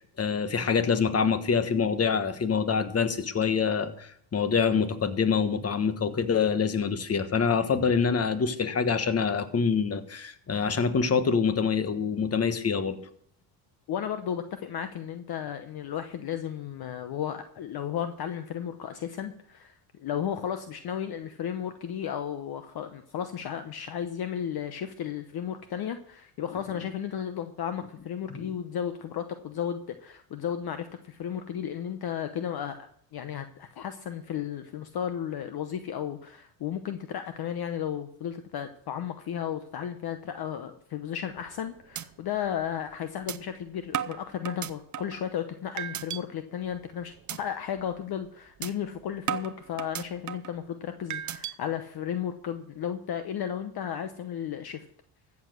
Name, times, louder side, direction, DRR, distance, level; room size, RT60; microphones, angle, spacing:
voice 1, 0.0-13.0 28.3-28.5, left 6 dB, 30° left, 11 dB, 1.3 m, -26 dB
voice 2, 13.9-32.8 33.1-54.9, left 9 dB, 50° left, 9 dB, 1.0 m, -34 dB
sound 1, 41.3-41.6 42.0-42.1 42.5-42.6 43.3-43.4 43.9-45.2 45.8-46.2 46.6-46.9 47.3-47.4 47.8-48.0 48.6-48.7 49.3-50.5 51.1-51.5, right 10 dB, 35° right, 0.7 m, -34 dB
14.5 x 7.3 x 6.2 m, 0.65 s
cardioid pair, 100°, 50 cm